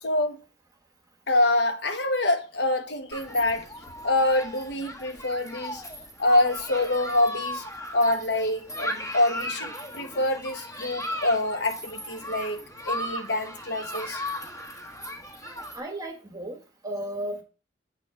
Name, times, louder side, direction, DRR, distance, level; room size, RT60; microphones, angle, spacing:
voice 1, 0.0-0.4 1.3-3.7 4.0-5.8 6.2-7.6 7.9-14.2, left 1 dB, 65° left, 1.1 m, -26 dB
Human group actions, 3.1-15.8, equal, 20° left, 1.4 m, -36 dB
voice 2, 15.7-17.4, right 1 dB, 20° right, 1.3 m, -34 dB
7.7 x 4.0 x 5.9 m
head